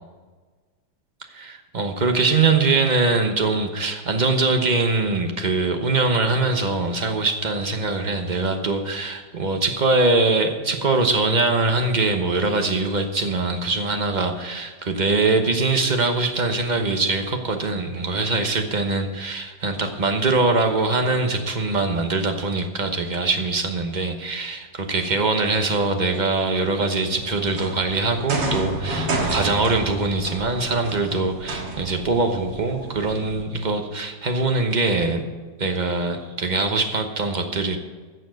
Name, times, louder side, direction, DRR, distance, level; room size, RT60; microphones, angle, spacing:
voice 1, 1.3-35.2 35.6-37.8, right 3 dB, 30° right, 5 dB, 0.9 m, -22 dB
sound 1, 27.1-33.4, right 2 dB, 80° right, 2.3 m, -30 dB
14.0 x 7.1 x 6.3 m, 1.4 s
omnidirectional pair, 2.0 m